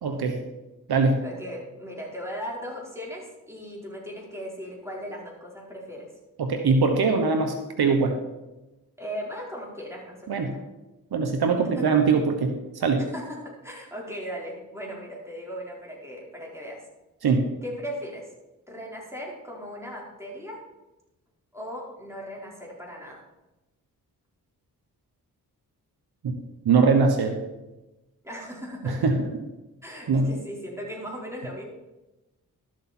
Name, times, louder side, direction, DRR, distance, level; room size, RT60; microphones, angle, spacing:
voice 1, 0.0-0.4 0.9-1.2 6.4-8.1 10.3-10.5 11.1-13.0 17.2-17.4 26.2-26.3 26.6-27.4 28.8-29.4 30.1-30.3, right 4 dB, 75° right, 5 dB, 1.2 m, -22 dB
voice 2, 1.2-6.1 9.0-10.6 11.8-11.9 13.1-16.8 17.6-18.3 18.7-20.6 21.5-23.2 28.2-29.0 29.8-31.6, equal, 5° right, -4 dB, 4.6 m, -37 dB
12.5 x 7.6 x 4.4 m, 1.0 s
cardioid pair, 45°, 39 cm